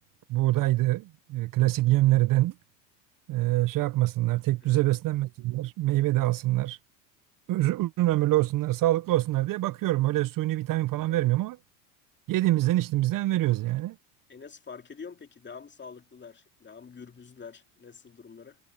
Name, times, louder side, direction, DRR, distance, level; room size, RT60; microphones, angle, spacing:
voice 1, 0.3-2.5 3.3-6.8 7.5-11.6 12.3-14.0, right 17 dB, 45° right, 0.8 m, -25 dB
voice 2, 14.3-18.6, left 5 dB, 25° left, 2.8 m, -46 dB
hypercardioid pair, 85°, 45 cm